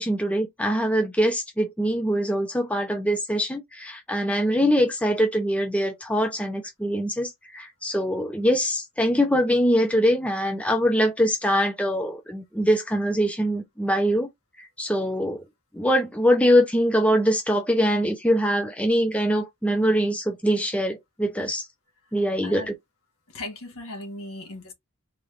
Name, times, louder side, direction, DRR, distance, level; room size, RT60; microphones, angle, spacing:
voice 1, 0.0-14.3 14.6-15.4 15.7-21.7 22.1-22.7, equal, 5° left, 0.7 m, -23 dB
voice 2, 23.3-24.7, left 1 dB, 75° left, 1.4 m, -37 dB
4.1 x 3.3 x 2.5 m
head